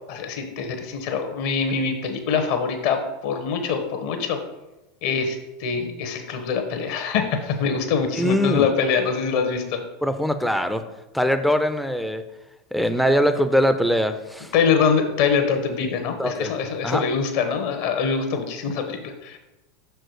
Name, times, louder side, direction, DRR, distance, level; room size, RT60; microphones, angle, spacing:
voice 1, 0.1-4.4 5.0-9.8 14.5-19.4, left 6 dB, 55° left, 6 dB, 1.1 m, -24 dB
voice 2, 8.2-8.7 10.0-10.8 11.1-12.2 12.7-14.5 16.2-16.5 16.8-17.0, equal, ahead, 9 dB, 0.5 m, -22 dB
6.1 x 4.6 x 4.8 m, 1.0 s
figure-of-eight pair, 85°, 0 cm